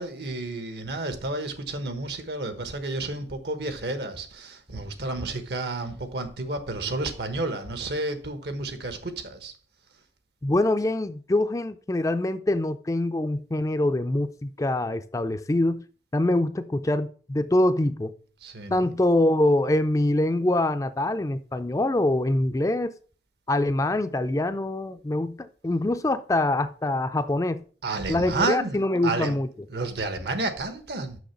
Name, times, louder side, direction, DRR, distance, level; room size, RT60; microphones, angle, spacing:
voice 1, 0.0-9.5 18.4-18.9 27.8-29.4 29.7-31.2, right 2 dB, 70° right, 1.3 m, -31 dB
voice 2, 10.4-15.8 16.1-18.1 18.7-22.9 23.5-27.6 28.1-29.5, left 1 dB, 20° left, 0.4 m, -24 dB
6.3 x 6.0 x 5.7 m
head